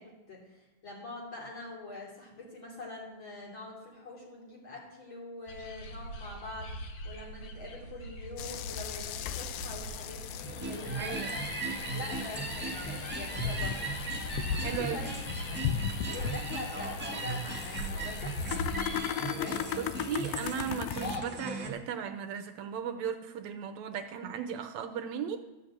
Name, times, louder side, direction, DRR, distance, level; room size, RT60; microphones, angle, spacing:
voice 1, 0.0-6.7 7.0-11.4 11.9-13.9 14.4-15.1 16.1-18.4 18.9-19.6, left 2 dB, 40° left, -3 dB, 3.6 m, -44 dB
sound 1, 5.5-19.0, equal, 55° left, 1.6 m, -42 dB
sound 2, 8.4-21.2, left 9 dB, 90° left, 1.4 m, -37 dB
sound 3, 10.4-21.7, right 2 dB, 10° right, 0.7 m, -38 dB
voice 2, 11.0-11.4 14.4-15.0 19.3-19.4 19.8-25.4, right 7 dB, 75° right, 6 dB, 1.9 m, -36 dB
13.0 x 6.0 x 7.8 m, 1.1 s
omnidirectional pair, 3.4 m